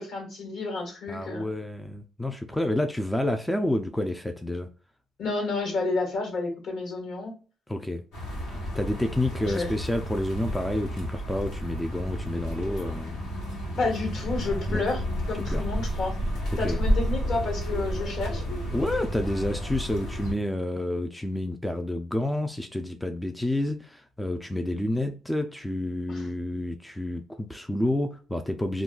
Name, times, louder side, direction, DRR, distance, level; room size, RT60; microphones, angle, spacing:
voice 1, 0.0-1.5 5.2-7.4 9.4-9.8 13.8-15.0 15.3-16.2 16.6-18.4 26.1-26.3, left 3 dB, 70° left, 1.2 m, -30 dB
voice 2, 1.1-4.7 7.7-8.0 8.7-13.2 14.7-14.9 15.3-15.6 16.6-16.8 18.7-28.8, left 1 dB, 5° left, 0.3 m, -29 dB
sound 1, 8.1-20.3, equal, 85° left, 1.2 m, -31 dB
2.3 x 2.2 x 3.7 m
cardioid pair, 100°, 0 cm